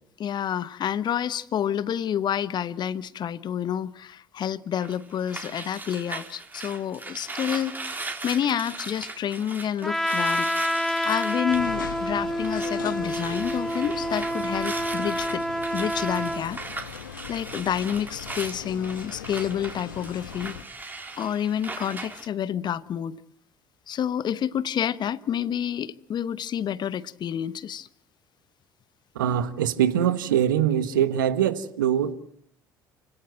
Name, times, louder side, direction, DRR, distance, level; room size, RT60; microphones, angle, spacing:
voice 1, 0.2-10.5 11.0-15.4 15.7-16.6 17.3-20.6 21.2-23.2 23.9-27.9, left 9 dB, 45° left, 1.0 m, -29 dB
sound 1, 4.8-12.8 13.0-22.3, right 3 dB, 15° right, 3.6 m, -39 dB
Trumpet, 9.8-16.5, equal, 5° left, 1.5 m, -28 dB
sound 2, 11.5-20.6, left 8 dB, 80° left, 1.3 m, -40 dB
voice 2, 29.1-32.1, right 10 dB, 75° right, 1.3 m, -23 dB
29.5 x 18.0 x 7.7 m
figure-of-eight pair, 60°, 11 cm